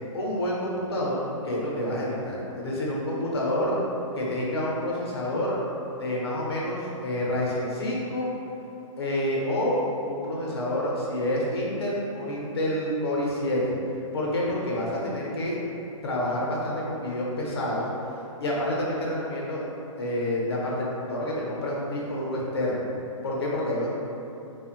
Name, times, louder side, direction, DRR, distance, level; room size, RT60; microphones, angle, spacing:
voice 1, 0.1-3.8 4.1-5.6 6.0-8.3 9.0-13.8 14.1-15.6 16.0-17.9 18.4-19.6 20.0-22.9 23.2-23.9, left 1 dB, 50° left, -4 dB, 0.6 m, -28 dB
3.1 x 2.1 x 2.8 m, 2.8 s
hypercardioid pair, 175°, 17 cm